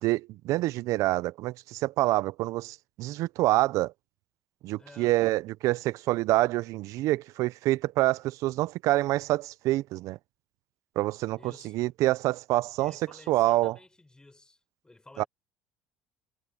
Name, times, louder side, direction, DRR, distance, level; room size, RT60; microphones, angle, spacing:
voice 1, 0.0-3.9 4.6-10.2 11.0-13.0 13.3-13.7 15.2-15.3, right 17 dB, 65° right, 0.7 m, -27 dB
voice 2, 4.8-5.2 11.4-11.8 12.8-15.3, left 2 dB, 15° left, 5.3 m, -53 dB
hypercardioid pair, 75°, 6 cm